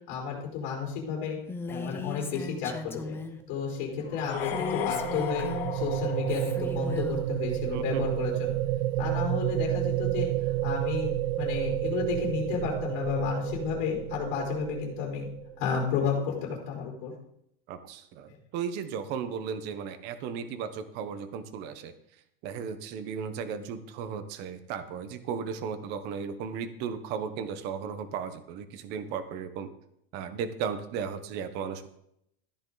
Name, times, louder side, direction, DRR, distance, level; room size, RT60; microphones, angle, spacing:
voice 1, 0.1-1.4 1.7-3.2 3.5-5.5 5.7-8.5 9.0-15.3 15.6-17.1, left 6 dB, 40° left, -3 dB, 4.4 m, -32 dB
Female speech woman speaking, 1.5-3.4 4.4-5.8 6.3-7.2, left 4 dB, 10° left, 0.6 m, -38 dB
sound 1, 3.6-15.8, right 15 dB, 60° right, 0.5 m, -31 dB
sound 2, 4.1-7.1, left 10 dB, 80° left, 1.9 m, -35 dB
voice 2, 7.7-8.1 17.7-21.9 22.4-29.7 30.1-31.9, right 7 dB, 35° right, 10 dB, 1.0 m, -35 dB
14.0 x 9.9 x 4.0 m, 0.75 s
supercardioid pair, 165°, 29 cm